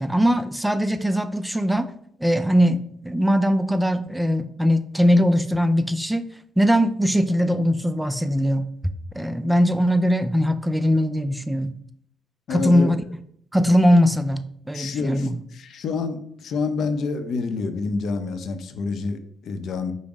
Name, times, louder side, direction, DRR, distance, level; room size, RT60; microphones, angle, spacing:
voice 1, 0.0-1.9 2.2-6.2 6.6-8.7 9.1-11.7 12.5-13.0 13.5-15.4, equal, 5° right, 10 dB, 0.3 m, -20 dB
voice 2, 12.5-12.9 14.7-19.9, left 4 dB, 70° left, 8 dB, 0.6 m, -28 dB
5.3 x 2.0 x 4.8 m, 0.66 s
cardioid pair, 90°, 0 cm